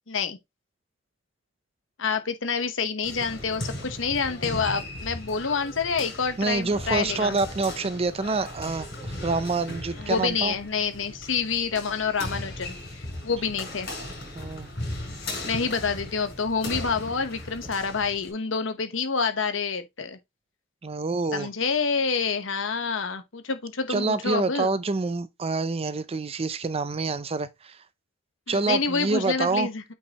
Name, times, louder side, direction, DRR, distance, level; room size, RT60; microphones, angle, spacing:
voice 1, 0.1-0.4 2.0-7.4 10.0-13.9 15.4-20.2 21.3-24.8 28.5-29.8, left 5 dB, 75° left, 1.0 m, -28 dB
sound 1, 3.0-18.3, left 1 dB, 55° left, 4.9 m, -37 dB
voice 2, 6.4-10.5 14.3-14.7 20.8-21.5 23.9-27.8 28.5-29.7, right 3 dB, 30° right, 0.5 m, -27 dB
8.6 x 4.7 x 2.9 m
head